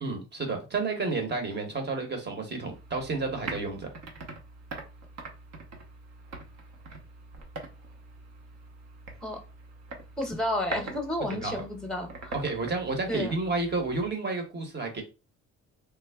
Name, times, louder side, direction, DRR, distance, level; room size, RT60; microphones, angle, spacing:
voice 1, 0.0-3.9 11.4-11.6 12.3-15.0, right 3 dB, 35° right, 1.1 m, -31 dB
sound 1, 2.7-14.1, right 3 dB, 60° right, 0.9 m, -43 dB
voice 2, 10.2-12.3 13.1-13.4, left 1 dB, ahead, 1.0 m, -31 dB
3.4 x 2.0 x 3.4 m
cardioid pair, 90°, 30 cm